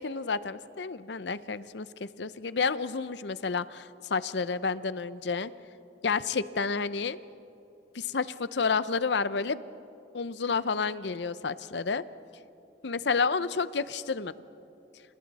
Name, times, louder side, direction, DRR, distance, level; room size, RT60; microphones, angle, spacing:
voice 1, 0.0-5.5 6.0-7.2 7.9-9.6 10.1-12.0 12.8-14.3, left 5 dB, 75° left, 15 dB, 0.7 m, -30 dB
29.5 x 28.5 x 4.2 m, 2.8 s
head